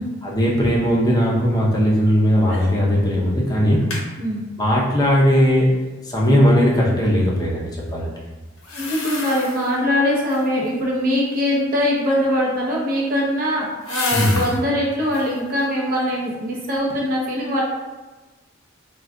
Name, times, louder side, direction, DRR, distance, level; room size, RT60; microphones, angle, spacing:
voice 1, 0.2-3.8 4.6-5.7 6.0-8.1 14.1-14.3, equal, 20° left, -4 dB, 0.5 m, -18 dB
sound 1, 2.5-2.8 3.1-3.2 3.6-4.1 8.6-9.8 10.2-10.7 12.6-14.6 15.0-15.4 15.9-16.6 16.9-17.0, left 3 dB, 75° left, 0.6 m, -32 dB
voice 2, 4.2-4.5 8.7-17.6, left 1 dB, 45° right, -3 dB, 0.7 m, -22 dB
2.3 x 2.2 x 3.6 m, 1.2 s
head